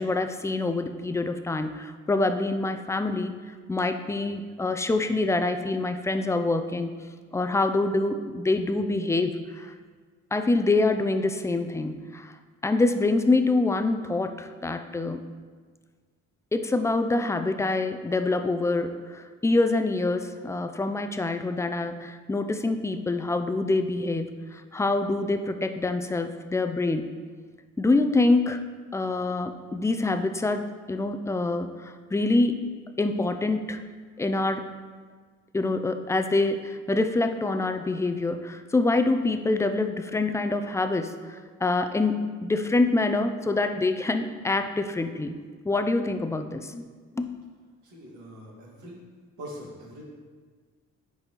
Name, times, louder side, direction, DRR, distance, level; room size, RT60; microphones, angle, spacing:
voice 1, 0.0-3.3 3.7-6.9 7.3-9.7 10.3-12.3 12.6-15.2 16.5-27.1 27.8-32.7 33.0-33.8 34.2-34.7 35.5-45.3 45.6-46.9 47.1-47.3, left 2 dB, 10° left, 8 dB, 0.4 m, -26 dB
voice 2, 47.8-49.0 49.4-50.0, equal, 75° right, -4 dB, 2.0 m, -42 dB
9.9 x 4.1 x 3.0 m, 1.5 s
cardioid pair, 90°, 30 cm